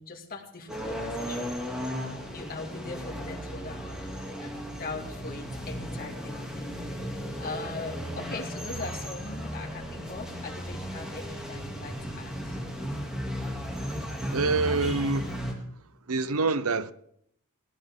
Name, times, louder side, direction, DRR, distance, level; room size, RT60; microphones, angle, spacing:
voice 1, 0.0-1.5 2.3-4.1 4.4-12.6, left 3 dB, 40° left, 2.3 m, -41 dB
sound 1, 0.7-15.5, equal, 5° right, 2.6 m, -35 dB
voice 2, 14.3-15.4 16.1-16.9, right 3 dB, 70° right, 0.7 m, -26 dB
19.0 x 17.0 x 3.7 m
head